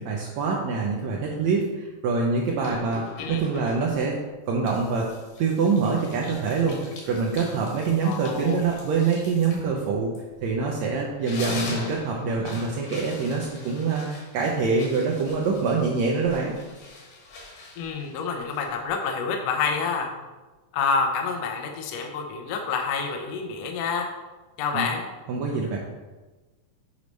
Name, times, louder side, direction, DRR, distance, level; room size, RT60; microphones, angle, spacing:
voice 1, 0.0-4.2 4.5-5.1 5.4-6.8 7.0-10.1 10.4-16.5 24.7-24.8 25.3-25.8, right 4 dB, 80° right, -2 dB, 1.6 m, -25 dB
sound 1, 2.6-4.2 4.7-10.7 11.1-18.9, left 2 dB, 70° left, 3.0 m, -41 dB
voice 2, 8.0-8.6 17.8-20.1 20.7-24.1 24.6-25.1, left 5 dB, 85° left, 2 dB, 1.4 m, -28 dB
8.4 x 3.2 x 5.1 m, 1.2 s
omnidirectional pair, 4.1 m